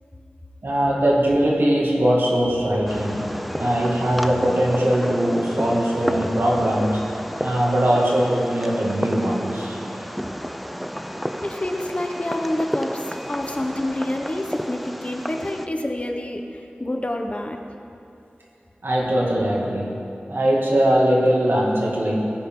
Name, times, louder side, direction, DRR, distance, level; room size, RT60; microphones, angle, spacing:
voice 1, 0.6-3.3 3.6-7.0 7.4-9.8 18.8-22.2, right 1 dB, 75° right, -4 dB, 2.4 m, -21 dB
sound 1, 2.2-8.7 8.9-9.0, left 1 dB, 65° left, 1.5 m, -41 dB
Fireworks, 2.9-15.7, equal, ahead, 0.6 m, -32 dB
voice 2, 11.4-17.6, left 1 dB, 35° left, 3 dB, 1.1 m, -28 dB
17.5 x 10.5 x 3.9 m, 2.7 s
wide cardioid pair, 55°, 4 cm